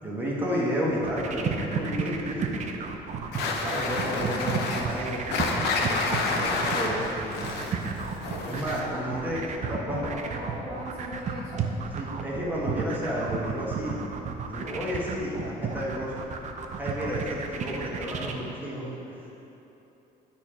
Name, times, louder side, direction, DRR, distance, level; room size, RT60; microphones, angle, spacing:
voice 1, 0.0-2.9 3.5-5.8 6.3-7.6 8.4-9.4 9.7-10.1 11.9-14.0 14.4-16.2 16.7-19.3, equal, 10° right, -6 dB, 1.5 m, -32 dB
sound 1, 0.9-18.3, right 6 dB, 45° right, 0.6 m, -33 dB
sound 2, 3.3-9.0, left 3 dB, 80° left, 0.8 m, -29 dB
voice 2, 8.9-11.7, left 1 dB, 5° left, -10 dB, 1.6 m, -40 dB
8.5 x 4.3 x 4.9 m, 3.0 s
cardioid pair, 110°, 17 cm